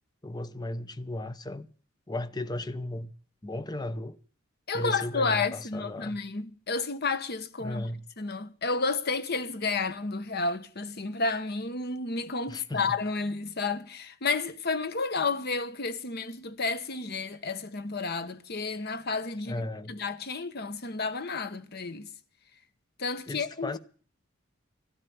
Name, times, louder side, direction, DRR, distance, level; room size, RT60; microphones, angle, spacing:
voice 1, 0.2-1.7 2.1-3.1 3.4-4.2 4.7-6.2 7.6-8.0 12.5-12.9 19.5-20.0 23.3-23.8, left 1 dB, 20° left, 0.7 m, -35 dB
voice 2, 4.7-7.9 8.2-19.6 19.9-22.1 23.0-23.8, left 4 dB, 50° left, 1.1 m, -31 dB
12.5 x 12.5 x 7.0 m
head